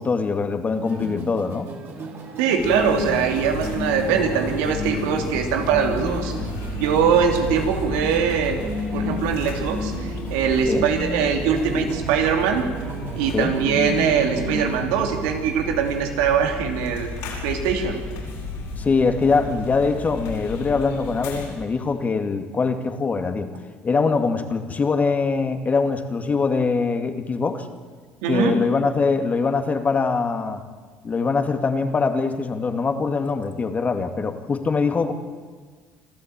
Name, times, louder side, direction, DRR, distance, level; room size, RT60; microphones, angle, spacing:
voice 1, 0.0-1.7 10.7-10.8 13.3-13.5 18.8-23.5 23.8-27.7 28.3-30.6 31.0-35.1, left 4 dB, 35° left, 7 dB, 2.3 m, -23 dB
sound 1, 0.7-14.8, left 1 dB, 55° right, 4.7 m, -32 dB
voice 2, 2.4-6.3 6.8-8.6 8.9-12.6 13.2-17.1 17.4-18.0 28.2-28.5, right 7 dB, 80° right, 4 dB, 2.8 m, -22 dB
sound 2, 2.6-21.5, left 1 dB, 80° left, 7.8 m, -33 dB
26.0 x 13.5 x 9.1 m, 1.5 s
supercardioid pair, 75°, 5 cm